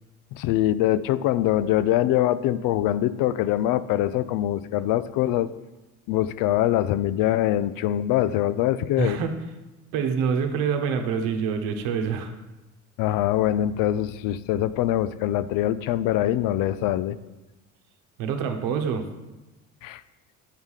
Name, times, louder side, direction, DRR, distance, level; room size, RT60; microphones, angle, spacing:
voice 1, 0.3-5.5 6.1-9.2 13.0-17.2 19.8-20.0, left 13 dB, 75° left, 15 dB, 0.5 m, -23 dB
voice 2, 9.0-9.4 9.9-12.3 18.2-19.1, right 6 dB, 85° right, 6 dB, 1.1 m, -26 dB
9.2 x 4.8 x 5.6 m, 1.1 s
cardioid pair, 125°, 33 cm